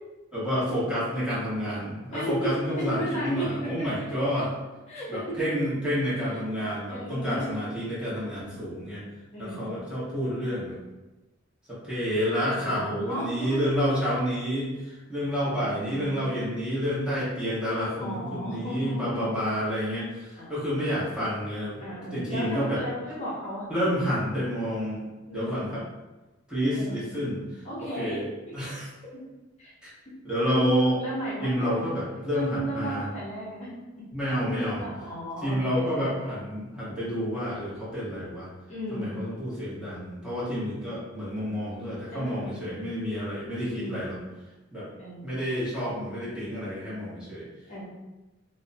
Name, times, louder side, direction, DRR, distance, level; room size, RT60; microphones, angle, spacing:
voice 1, 0.3-4.5 5.1-9.0 9.4-10.8 11.7-21.8 22.1-22.8 23.7-25.0 25.3-25.8 26.5-28.2 28.5-28.9 29.8-29.9 30.2-31.0 31.4-33.1 34.1-34.8 35.4-38.5 38.9-44.1 44.7-44.9 45.2-47.5, equal, 5° right, -11 dB, 0.9 m, -29 dB
voice 2, 2.1-3.9 4.9-5.4 6.3-6.4 6.9-7.5 9.3-9.6 12.5-13.7 15.4-16.3 18.0-19.3 20.4-21.0 21.8-23.7 25.3-25.6 26.7-27.0 27.6-28.2 29.6-29.7 30.4-30.7 31.0-31.5 31.9-32.0 32.3-33.7 34.0-34.1 34.4-36.1 38.7-39.2 40.3-40.8 42.1-42.8 43.7-44.2 45.0-45.3 47.6-47.8, equal, 35° left, -8 dB, 0.7 m, -35 dB
2.6 x 2.1 x 2.5 m, 1.1 s
head